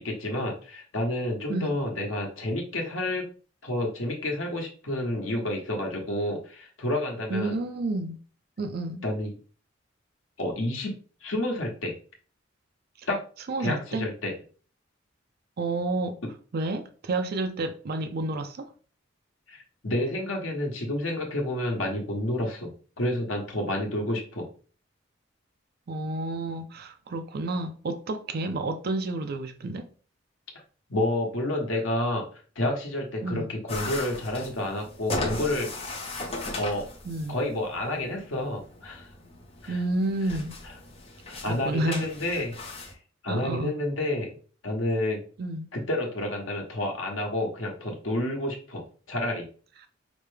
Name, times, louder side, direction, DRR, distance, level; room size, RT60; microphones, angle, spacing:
voice 1, 0.0-3.3 3.6-7.6 9.0-9.3 10.4-10.9 11.2-12.0 13.1-13.2 13.6-14.3 19.5-19.6 19.8-24.5 30.9-32.2 32.6-35.7 36.6-36.9 37.3-39.1 39.6-39.8 41.3-42.5 43.2-44.4 44.6-45.2 45.7-48.8 49.1-49.5, left 1 dB, 90° left, 1.1 m, -29 dB
voice 2, 7.3-8.2 8.6-9.0 13.5-14.1 15.6-16.2 16.5-18.7 25.9-29.9 33.2-33.5 37.1-37.4 39.7-40.6 41.5-42.0 43.3-43.7 45.4-45.7, right 2 dB, 55° right, 0.4 m, -30 dB
sound 1, 33.7-42.9, left 2 dB, 30° left, 0.8 m, -37 dB
5.0 x 2.2 x 3.2 m
head